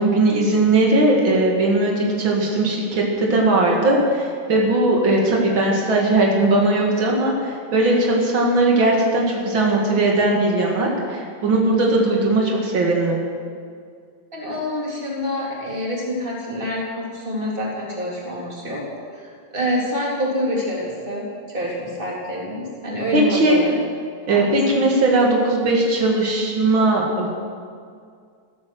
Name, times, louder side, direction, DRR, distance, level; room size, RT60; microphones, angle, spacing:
voice 1, 0.0-13.2 23.1-23.6 24.3-27.3, right 2 dB, 90° right, -1 dB, 3.0 m, -19 dB
voice 2, 14.3-18.8 19.1-23.7 24.3-24.5, equal, 25° right, -4 dB, 3.5 m, -26 dB
14.5 x 14.0 x 6.4 m, 2.2 s
omnidirectional pair, 2.1 m